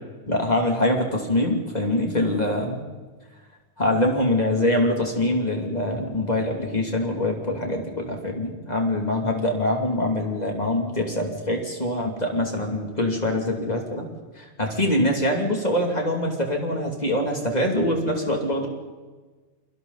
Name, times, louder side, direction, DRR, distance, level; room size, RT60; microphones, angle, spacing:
voice 1, 0.3-2.8 3.8-14.1 14.3-18.7, left 1 dB, 35° left, 1 dB, 3.0 m, -24 dB
29.0 x 24.0 x 4.1 m, 1.3 s
omnidirectional pair, 1.2 m